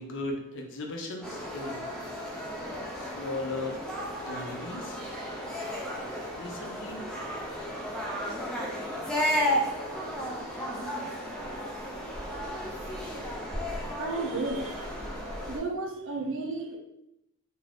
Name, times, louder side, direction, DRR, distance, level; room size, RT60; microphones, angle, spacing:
voice 1, 0.0-1.9 3.0-3.8 4.2-5.0 6.4-7.0, left 2 dB, 55° left, 2 dB, 0.6 m, -37 dB
sound 1, 1.2-15.6, equal, 5° left, 0.4 m, -34 dB
voice 2, 14.0-14.9 15.5-16.8, right 3 dB, 60° right, 2 dB, 0.5 m, -33 dB
2.6 x 2.5 x 3.3 m, 0.83 s
head